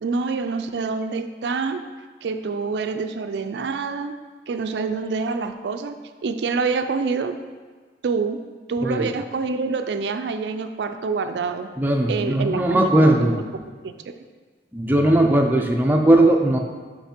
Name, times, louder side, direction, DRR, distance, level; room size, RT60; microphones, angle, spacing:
voice 1, 0.0-1.8 2.2-4.1 4.5-5.9 6.2-7.4 8.0-8.4 8.7-11.7 12.1-13.4 13.8-13.9, right 4 dB, 75° right, 8 dB, 0.4 m, -26 dB
voice 2, 11.8-13.4 14.7-16.6, right 1 dB, 10° right, 1 dB, 0.4 m, -18 dB
5.8 x 5.3 x 4.3 m, 1.5 s
head